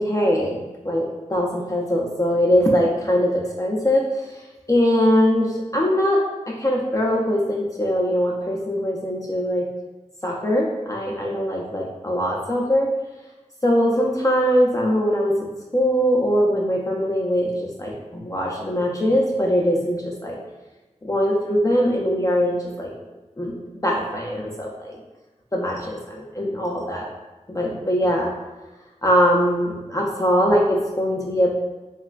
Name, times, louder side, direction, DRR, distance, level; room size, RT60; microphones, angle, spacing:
voice 1, 0.0-9.7 10.2-12.9 13.6-15.4 15.7-20.4 21.0-22.9 23.4-23.6 23.8-25.0 25.5-27.1 27.5-28.3 29.0-31.6, equal, 25° left, -2 dB, 0.5 m, -21 dB
3.1 x 2.9 x 2.4 m, 1.1 s
cardioid pair, 55°, 13 cm